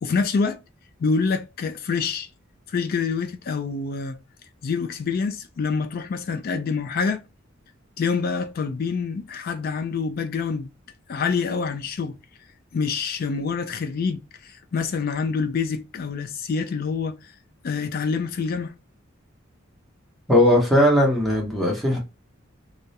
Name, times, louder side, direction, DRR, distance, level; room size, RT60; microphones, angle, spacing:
voice 1, 0.0-0.6 1.0-2.3 2.7-4.2 4.6-7.2 8.0-10.7 11.1-12.2 12.7-17.2 17.6-18.7, left 5 dB, 45° left, 0.3 m, -26 dB
voice 2, 20.3-22.0, left 1 dB, ahead, 0.7 m, -18 dB
2.3 x 2.0 x 2.7 m
head